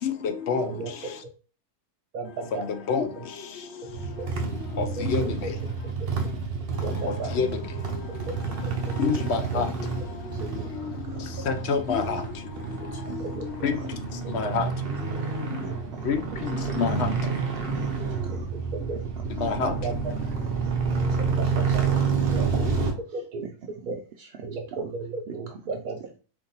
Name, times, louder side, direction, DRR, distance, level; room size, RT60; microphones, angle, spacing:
voice 1, 0.0-1.2 2.5-5.6 6.7-15.7 16.0-17.3 19.4-20.0, left 5 dB, 60° left, 0.7 m, -30 dB
voice 2, 2.1-2.7 4.2-4.3 4.8-4.9 6.8-7.3 9.5-9.6 13.4-13.5 14.2-14.3 15.1-15.2 16.7-16.8 18.7-19.0 19.6-19.9 21.2-21.9 22.3-22.6 23.1-23.5 23.9-24.0 24.4-26.0, right 4 dB, 75° right, 1.2 m, -34 dB
sound 1, 3.9-22.9, right 5 dB, 50° right, 0.8 m, -29 dB
voice 3, 6.9-7.5 8.0-8.2 10.3-11.3 12.6-13.3 13.7-13.9 14.2-14.6 15.6-16.1 16.6-17.4 17.7-18.5 19.1-19.8 20.0-24.9 25.3-25.6, right 6 dB, 90° right, 0.5 m, -44 dB
4.4 x 2.9 x 3.9 m
omnidirectional pair, 1.6 m